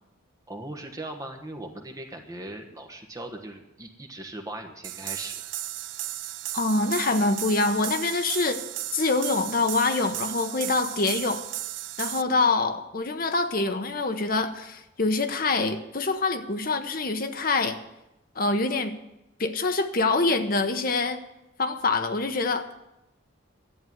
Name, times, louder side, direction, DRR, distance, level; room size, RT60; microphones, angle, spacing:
voice 1, 0.5-5.3, right 1 dB, 15° right, 1.3 m, -39 dB
sound 1, 4.8-12.2, right 15 dB, 60° right, 0.4 m, -35 dB
voice 2, 6.5-8.6 8.9-11.4 12.0-17.8 18.4-18.9 19.4-21.2 21.6-22.9, left 3 dB, 45° left, 0.9 m, -25 dB
11.0 x 7.8 x 9.3 m
head